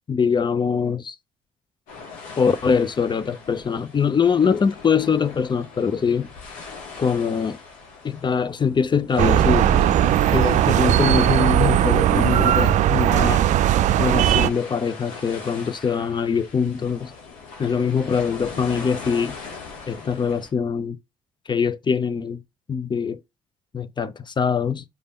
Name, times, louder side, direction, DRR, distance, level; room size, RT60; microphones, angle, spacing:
voice 1, 0.1-1.2 2.4-6.3 7.0-7.6 8.0-9.8 10.3-13.5 14.0-17.1 17.6-19.4 19.9-21.0 21.5-22.4 22.7-23.2 23.7-24.8, left 6 dB, 35° left, 0.6 m, -23 dB
sound 1, 1.9-20.5, left 4 dB, 75° left, 2.4 m, -41 dB
sound 2, 9.2-14.5, right 11 dB, 60° right, 0.5 m, -18 dB
5.4 x 3.4 x 5.5 m
hypercardioid pair, 60°, 14 cm